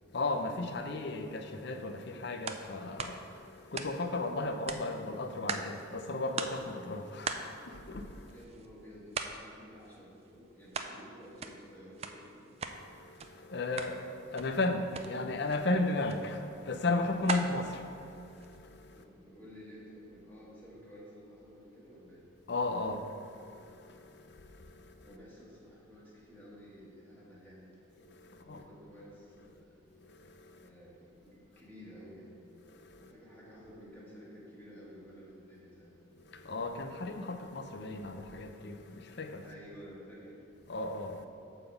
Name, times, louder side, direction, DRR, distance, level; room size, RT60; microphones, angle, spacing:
voice 1, 0.1-8.4 12.7-19.0 22.5-25.1 28.0-28.6 29.9-30.7 32.6-33.1 36.1-39.5 40.7-41.3, left 2 dB, 55° left, 0.6 m, -36 dB
sound 1, 2.4-2.6 3.0-4.2 4.7-5.8 6.1-6.2 6.4-6.7 7.2-8.7 9.1-9.5 9.8-11.0 11.2-12.8 13.1-13.3 13.6-14.0 14.3-14.6 14.9-15.1 15.4-15.6 16.1-16.3 16.7-18.6, right 5 dB, 30° right, 0.4 m, -39 dB
voice 2, 8.3-12.5 18.9-22.2 25.0-27.7 28.3-29.7 30.6-32.4 33.0-35.9 39.4-40.4, equal, 10° left, 1.8 m, -52 dB
9.0 x 4.0 x 7.0 m
head